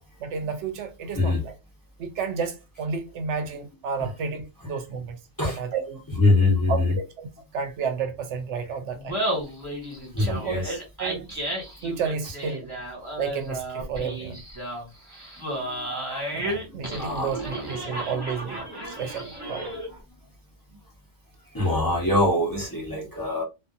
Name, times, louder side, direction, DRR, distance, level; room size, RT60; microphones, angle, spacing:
voice 1, 0.2-1.5 2.0-5.2 5.4-6.0 6.7-7.3 7.5-9.2 10.2-10.6 11.0-11.3 11.8-12.7 13.2-14.4 16.3-19.7, right 6 dB, 75° right, 0.9 m, -31 dB
voice 2, 6.1-6.9 10.1-10.8 15.6-15.8 16.1-16.3 17.0-17.4 21.5-23.4, left 2 dB, 20° left, 0.9 m, -23 dB
Laughter, 8.9-20.0, right 1 dB, 20° right, 1.4 m, -33 dB
2.6 x 2.5 x 2.4 m
omnidirectional pair, 1.2 m